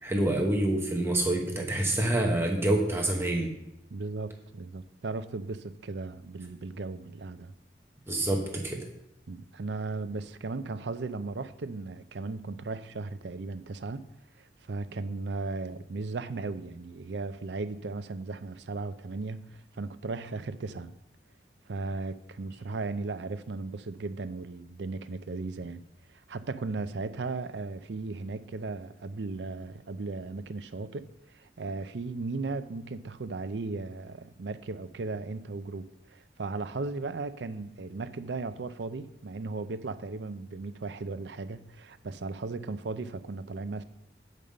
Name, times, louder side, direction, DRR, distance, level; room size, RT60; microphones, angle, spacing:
voice 1, 0.0-3.5 8.1-8.9, right 1 dB, 15° right, 1.0 m, -27 dB
voice 2, 3.9-7.5 9.3-14.0 14.4-20.9 21.7-25.8 26.1-43.8, right 3 dB, 75° right, 0.5 m, -36 dB
8.6 x 5.4 x 6.3 m
head